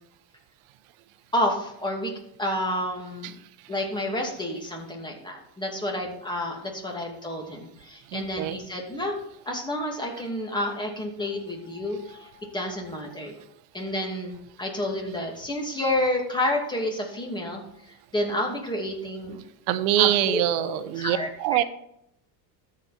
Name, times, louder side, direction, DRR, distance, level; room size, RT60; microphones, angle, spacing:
voice 1, 1.3-2.1 2.4-3.3 3.7-9.2 9.4-13.4 13.7-17.6 18.1-19.4 20.0-21.3, left 1 dB, 10° left, 0 dB, 2.5 m, -30 dB
voice 2, 8.1-8.6 19.7-21.6, right 13 dB, 75° right, 13 dB, 0.9 m, -24 dB
13.5 x 5.3 x 4.3 m, 0.76 s
supercardioid pair, 105°, 46 cm